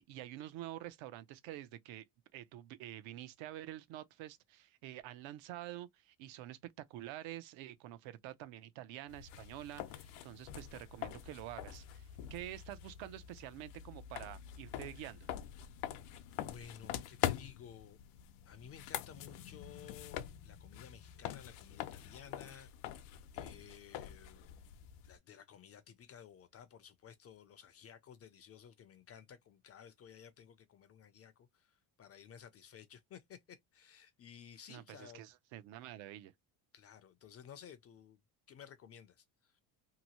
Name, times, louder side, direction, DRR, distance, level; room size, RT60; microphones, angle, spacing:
voice 1, 0.0-2.1 2.3-15.3 34.7-36.3, right 14 dB, 70° right, 0.6 m, -48 dB
sound 1, 9.1-25.2, left 12 dB, 90° left, 0.7 m, -44 dB
voice 2, 16.3-18.0 18.5-24.6 25.0-35.3 36.7-38.2 38.5-39.6, left 8 dB, 35° left, 0.4 m, -55 dB
2.9 x 2.6 x 2.8 m
cardioid pair, 140°, 49 cm